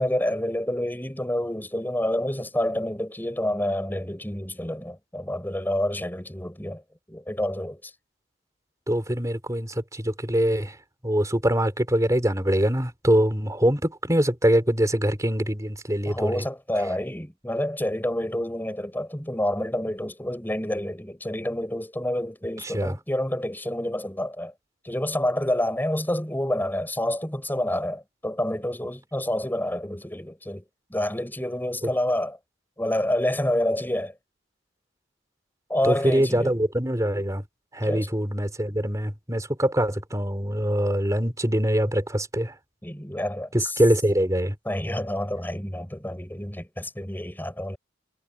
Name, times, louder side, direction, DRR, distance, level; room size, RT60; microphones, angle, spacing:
voice 1, 0.0-6.8 7.1-7.9 16.1-24.5 24.8-30.6 30.9-32.4 32.8-34.1 35.7-36.6 37.9-38.1 42.8-43.8 44.6-47.8, left 1 dB, 10° left, 4.9 m, -28 dB
voice 2, 8.9-10.8 11.0-16.4 22.6-22.9 31.8-31.9 35.8-37.4 37.7-42.5 43.5-44.5, equal, 15° right, 4.1 m, -23 dB
head